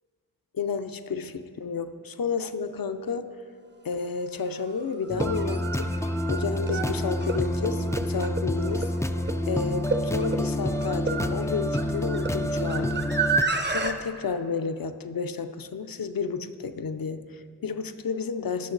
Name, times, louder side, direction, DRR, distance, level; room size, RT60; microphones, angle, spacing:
voice 1, 0.5-3.3 3.8-5.9 6.3-8.9 9.5-13.1 13.7-18.7, left 5 dB, 55° left, 10 dB, 0.6 m, -31 dB
sound 1, 3.9-4.0 5.0-13.9, right 4 dB, 25° right, 0.7 m, -31 dB
sound 2, 5.1-13.4, left 1 dB, 10° left, 0.3 m, -28 dB
20.0 x 6.6 x 3.9 m, 2.2 s
wide cardioid pair, 100°, 42 cm